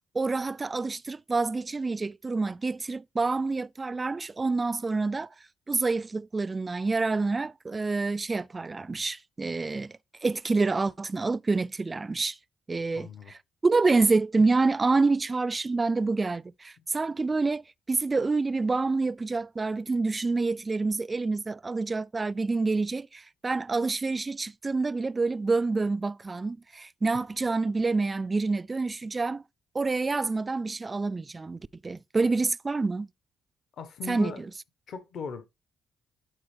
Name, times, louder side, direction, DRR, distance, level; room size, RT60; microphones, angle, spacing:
voice 1, 0.1-5.3 5.7-9.9 10.2-12.4 12.7-13.4 13.6-29.4 29.7-33.1 34.1-34.5, right 3 dB, 25° right, 0.3 m, -27 dB
voice 2, 12.9-13.3 33.8-34.4 34.9-35.4, left 5 dB, 65° left, 1.3 m, -38 dB
11.5 x 4.5 x 3.4 m
cardioid pair, 90°, 0 cm